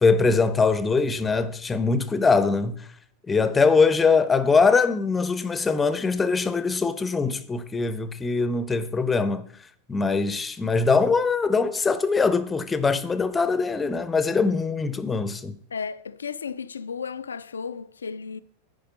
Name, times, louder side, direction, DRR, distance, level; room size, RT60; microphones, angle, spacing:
voice 1, 0.0-2.7 3.3-9.4 9.9-15.5, left 4 dB, 15° left, 0.6 m, -22 dB
voice 2, 15.7-18.4, left 6 dB, 70° left, 0.4 m, -34 dB
10.0 x 5.0 x 5.0 m
figure-of-eight pair, 90°, 0 cm